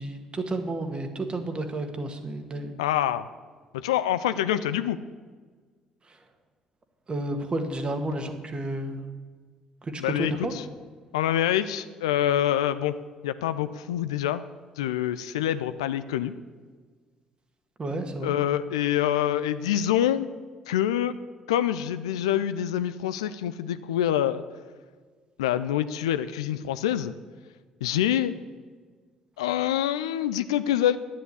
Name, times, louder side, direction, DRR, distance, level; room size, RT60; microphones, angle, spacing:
voice 1, 0.0-2.8 7.1-9.0 9.8-10.5 17.8-18.3, right 2 dB, 35° right, 6 dB, 1.8 m, -31 dB
voice 2, 2.8-3.3 3.7-5.0 10.0-10.6 11.1-12.9 13.2-14.4 14.8-16.3 18.2-20.3 20.7-21.1 21.5-24.4 25.4-27.1 27.8-28.3 29.4-31.0, left 11 dB, 75° left, 13 dB, 0.4 m, -26 dB
10.0 x 9.4 x 8.4 m, 1.5 s
figure-of-eight pair, 45°, 3 cm